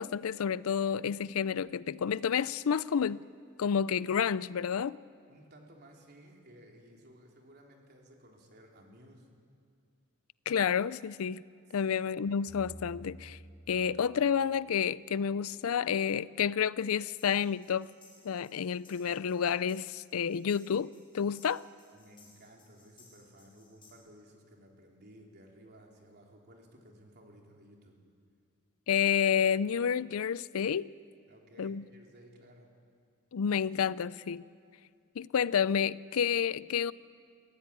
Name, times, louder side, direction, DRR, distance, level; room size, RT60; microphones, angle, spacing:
voice 1, 0.0-3.2 3.6-5.0 10.5-11.4 11.7-13.4 13.7-17.9 18.2-21.6 28.9-30.9 31.6-31.8 33.3-34.4 35.2-36.9, left 7 dB, 75° left, 0.4 m, -30 dB
voice 2, 5.3-9.3 11.7-11.9 21.9-28.0 31.3-32.7, equal, 50° right, 3.6 m, -56 dB
sound 1, 12.5-14.9, right 1 dB, 5° right, 3.4 m, -51 dB
sound 2, 17.2-23.9, left 3 dB, 25° left, 6.2 m, -62 dB
23.5 x 15.0 x 9.7 m
head